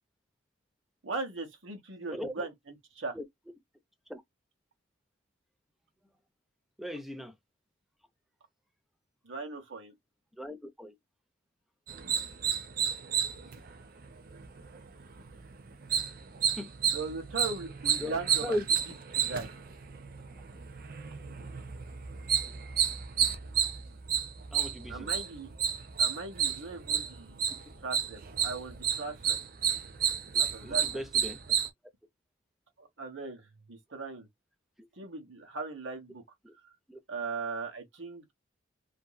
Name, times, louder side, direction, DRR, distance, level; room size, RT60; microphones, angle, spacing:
voice 1, 1.0-3.2 9.2-9.9 16.9-18.6 19.1-19.5 24.9-25.5 26.0-27.4 27.8-29.4 30.4-31.0 32.8-34.3 35.0-36.2 36.6-36.7 37.1-38.3, right 4 dB, 70° right, 1.1 m, -39 dB
voice 2, 6.8-7.3 10.4-10.9 16.5-16.7 18.0-18.6 24.5-25.1 30.3-31.4 36.4-36.5 36.9-37.0, left 1 dB, ahead, 0.5 m, -38 dB
sound 1, 11.9-31.7, right 8 dB, 45° right, 0.6 m, -31 dB
2.9 x 2.6 x 2.2 m
head